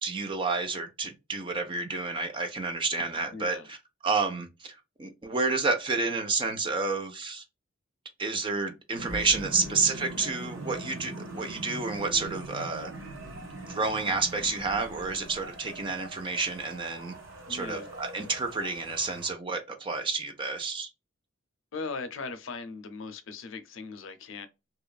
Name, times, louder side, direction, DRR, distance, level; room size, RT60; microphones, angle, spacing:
voice 1, 0.0-3.8 4.0-7.4 8.2-12.9 13.5-17.1 17.5-20.9, right 4 dB, 25° right, 0.5 m, -30 dB
voice 2, 3.3-3.7 9.6-9.7 17.5-17.9 21.7-24.5, left 4 dB, 75° left, 0.5 m, -39 dB
sound 1, 9.0-19.3, right 2 dB, 75° right, 0.9 m, -42 dB
2.8 x 2.4 x 2.2 m
head